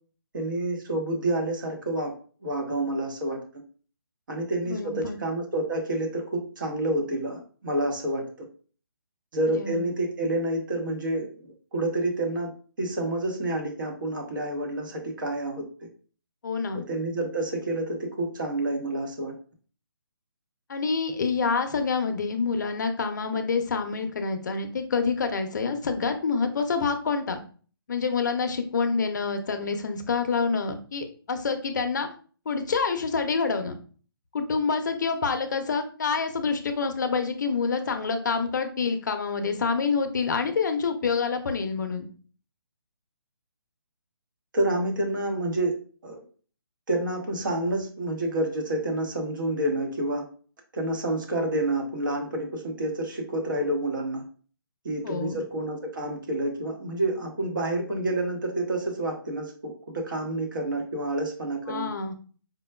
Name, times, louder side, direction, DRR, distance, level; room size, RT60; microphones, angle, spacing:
voice 1, 0.3-2.1 2.4-3.4 4.3-8.5 9.3-11.3 11.7-12.5 12.8-15.7 16.7-19.3 44.5-45.7 46.0-46.2 46.9-50.3 50.7-54.2 54.8-61.9, right 1 dB, 55° right, 2 dB, 1.0 m, -28 dB
voice 2, 4.7-5.2 9.5-9.8 16.4-16.8 20.7-27.4 27.9-32.1 32.5-33.7 34.3-42.1 55.0-55.4 61.7-62.1, left 5 dB, 50° left, 7 dB, 0.5 m, -27 dB
4.5 x 2.2 x 2.2 m, 0.40 s
hypercardioid pair, 165°, 13 cm